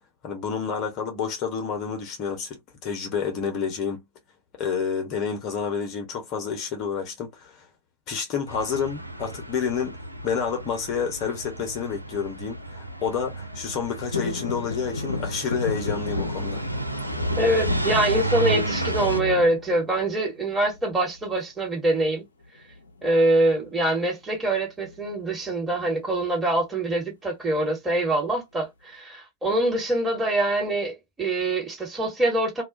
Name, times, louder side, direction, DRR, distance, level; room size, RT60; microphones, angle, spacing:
voice 1, 0.2-4.0 4.6-7.6 8.1-16.6, left 6 dB, 35° left, 0.8 m, -29 dB
sound 1, 8.5-19.2, right 2 dB, 90° right, 0.4 m, -33 dB
sound 2, 14.1-20.3 20.7-21.3 22.6-23.0 23.3-23.4 23.7-24.0 24.8-25.7 26.2-26.3, left 2 dB, 75° left, 0.5 m, -31 dB
voice 2, 17.4-22.2 23.0-32.6, right 1 dB, 15° right, 1.3 m, -24 dB
2.3 x 2.2 x 2.5 m
figure-of-eight pair, 90°, 0 cm